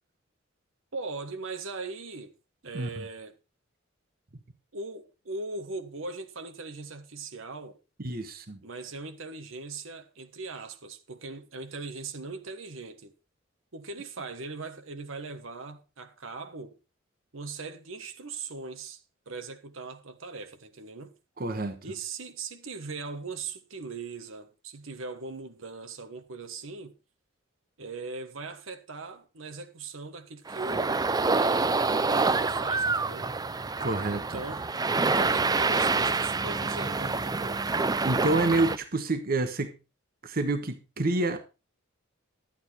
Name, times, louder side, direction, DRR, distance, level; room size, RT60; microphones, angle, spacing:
voice 1, 0.9-2.3 2.6-3.4 4.7-7.8 8.6-13.1 13.7-16.8 17.3-19.0 19.3-21.1 21.8-26.9 27.8-33.3 34.1-34.7 35.0-37.7, right 3 dB, 75° right, 1.3 m, -40 dB
voice 2, 8.0-8.6 21.4-21.8 33.8-34.4 38.0-39.7 40.2-41.4, right 2 dB, 50° right, 1.2 m, -28 dB
sound 1, 30.5-38.8, right 3 dB, 20° right, 0.5 m, -27 dB
12.0 x 8.8 x 4.3 m
head